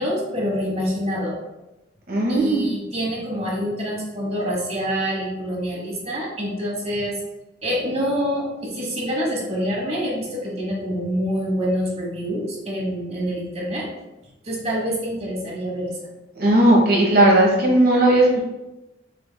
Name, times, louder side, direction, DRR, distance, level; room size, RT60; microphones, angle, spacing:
voice 1, 0.0-1.3 2.3-7.2 7.6-13.9 14.4-16.1, equal, 35° right, -2 dB, 1.2 m, -26 dB
voice 2, 2.1-2.7 16.4-18.4, right 1 dB, 55° right, -2 dB, 1.3 m, -16 dB
6.5 x 3.5 x 2.2 m, 0.98 s
head